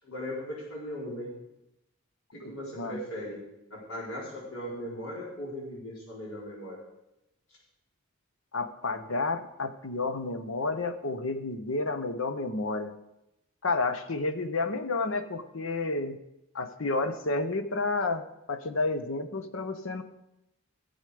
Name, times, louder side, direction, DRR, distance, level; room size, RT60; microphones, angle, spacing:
voice 1, 0.0-1.3 2.3-3.4 3.7-6.8, equal, 90° left, -4 dB, 4.4 m, -38 dB
voice 2, 2.4-3.0 8.5-12.9 13.6-16.2 16.5-20.0, left 3 dB, 75° left, 9 dB, 0.9 m, -31 dB
16.5 x 8.2 x 5.0 m, 0.90 s
head